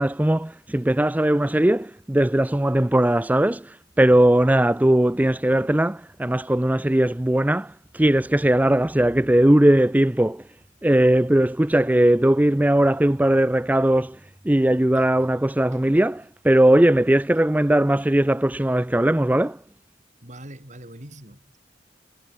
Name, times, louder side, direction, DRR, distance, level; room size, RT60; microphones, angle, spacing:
voice 1, 0.0-10.5 10.8-19.6, right 1 dB, 10° right, 0.4 m, -19 dB
voice 2, 20.2-21.6, right 1 dB, 40° right, 4.0 m, -43 dB
head